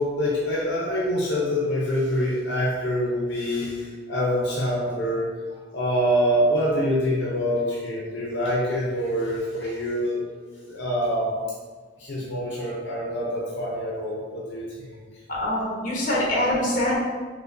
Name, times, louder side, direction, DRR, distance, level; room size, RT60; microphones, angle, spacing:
voice 1, 0.0-5.3 5.7-10.2 10.7-11.4 12.0-15.0, equal, 75° left, -5 dB, 0.6 m, -25 dB
voice 2, 15.3-17.0, left 1 dB, 45° left, -5 dB, 1.0 m, -24 dB
4.7 x 2.2 x 2.6 m, 1.5 s
head